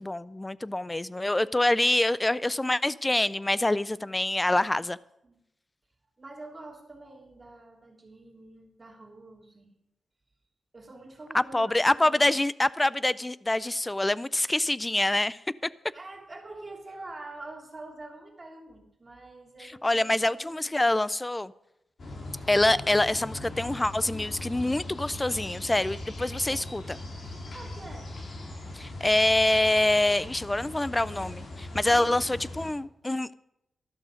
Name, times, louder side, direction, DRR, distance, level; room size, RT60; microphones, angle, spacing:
voice 1, 0.0-5.0 11.3-15.4 19.6-21.5 22.5-27.0 28.7-33.3, left 1 dB, 15° left, 19 dB, 0.4 m, -25 dB
voice 2, 4.4-4.8 5.2-5.4 6.2-9.7 10.7-12.3 15.9-20.6 27.2-28.1 31.7-32.1, right 2 dB, 25° right, -1 dB, 3.1 m, -46 dB
sound 1, 22.0-32.7, left 2 dB, 55° left, 2.7 m, -40 dB
13.0 x 12.5 x 5.0 m, 0.83 s
wide cardioid pair, 120°, 0 cm